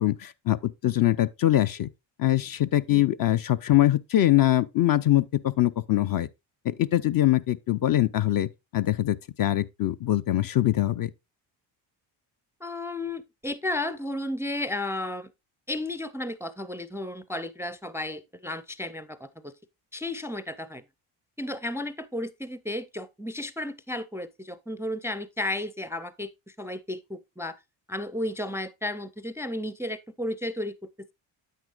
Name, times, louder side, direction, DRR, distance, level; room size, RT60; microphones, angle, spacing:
voice 1, 0.0-1.9 2.2-6.3 6.6-11.1, left 13 dB, 45° left, 0.5 m, -23 dB
voice 2, 12.6-15.3 15.7-19.5 19.9-20.8 21.4-27.6 27.9-30.8, left 1 dB, 5° right, 0.4 m, -33 dB
9.4 x 8.1 x 2.4 m
cardioid pair, 85°, 49 cm